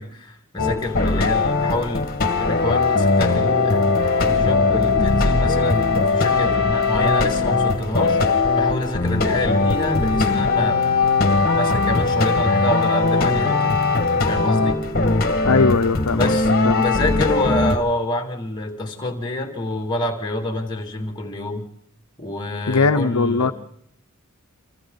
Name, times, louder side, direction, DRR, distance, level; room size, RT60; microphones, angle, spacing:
voice 1, 0.0-2.1 2.4-3.8 4.2-8.2 8.6-10.9 11.3-13.8 14.3-14.8 16.1-21.7 22.2-23.5, left 1 dB, 20° left, 2 dB, 2.6 m, -27 dB
sound 1, 0.6-17.8, left 3 dB, 45° left, 1.8 m, -19 dB
voice 2, 15.4-16.4 16.6-16.8 22.7-23.5, left 4 dB, 80° left, 8 dB, 0.8 m, -19 dB
29.5 x 25.5 x 4.0 m, 0.73 s
head